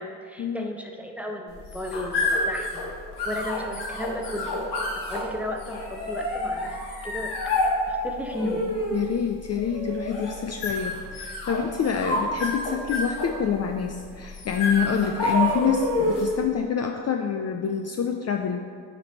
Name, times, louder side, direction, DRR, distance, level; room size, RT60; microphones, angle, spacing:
voice 1, 0.0-2.9 3.2-4.6 5.0-6.8 7.0-8.6, equal, 5° right, 2 dB, 0.9 m, -34 dB
sound 1, 1.5-16.4, left 1 dB, 60° left, 1.6 m, -29 dB
voice 2, 8.9-18.7, left 7 dB, 35° left, 4 dB, 0.5 m, -27 dB
9.0 x 3.3 x 4.2 m, 2.2 s
hypercardioid pair, 45°, 44 cm